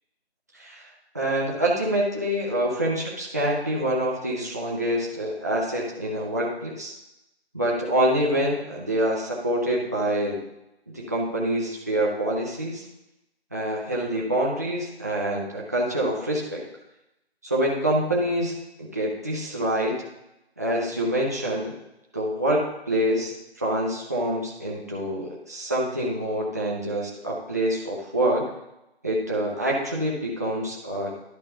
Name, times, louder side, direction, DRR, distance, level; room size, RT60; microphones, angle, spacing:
voice 1, 0.5-7.0 7.5-10.4 10.9-12.8 13.5-16.6 17.4-20.0 20.6-21.7 22.1-28.5 29.0-31.1, right 1 dB, 15° right, -4 dB, 0.6 m, -26 dB
11.0 x 4.1 x 5.3 m, 0.89 s
figure-of-eight pair, 155°, 33 cm